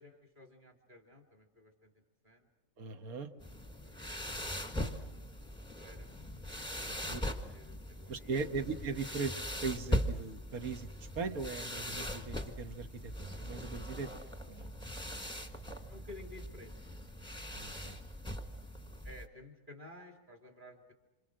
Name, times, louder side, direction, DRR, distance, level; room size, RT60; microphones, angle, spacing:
voice 1, 0.0-2.5 3.8-5.5 5.8-6.1 6.7-8.5 15.9-16.8 19.0-20.9, left 2 dB, 25° right, 3 dB, 2.9 m, -55 dB
voice 2, 2.8-3.3 7.1-7.2 8.1-14.1 14.5-14.7 17.5-18.0, right 4 dB, 55° right, 8 dB, 1.8 m, -39 dB
sound 1, 3.4-19.3, left 1 dB, 5° left, 1.4 m, -40 dB
27.0 x 27.0 x 6.4 m, 0.91 s
omnidirectional pair, 1.9 m